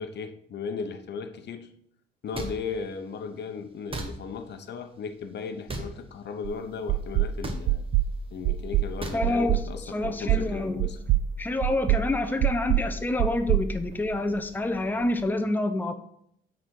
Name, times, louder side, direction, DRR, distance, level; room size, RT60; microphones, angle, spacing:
voice 1, 0.0-1.7 2.2-7.8 8.3-11.0 11.7-11.8, left 5 dB, 60° left, 0.8 m, -36 dB
sound 1, 2.3-2.5 3.9-4.1 5.7-5.9 7.4-7.6 9.0-9.2, right 2 dB, 25° right, 1.3 m, -33 dB
sound 2, 6.4-6.5 6.9-7.3 7.7-8.1 8.4-8.9 9.2-9.7 10.0-10.5 10.8-11.3 11.6-12.0 12.4-12.9 13.2-14.4, right 14 dB, 75° right, 0.4 m, -24 dB
voice 2, 9.1-9.6 9.9-10.9 11.4-15.9, left 2 dB, 10° left, 0.7 m, -27 dB
8.8 x 4.2 x 4.5 m
cardioid pair, 90°, 20 cm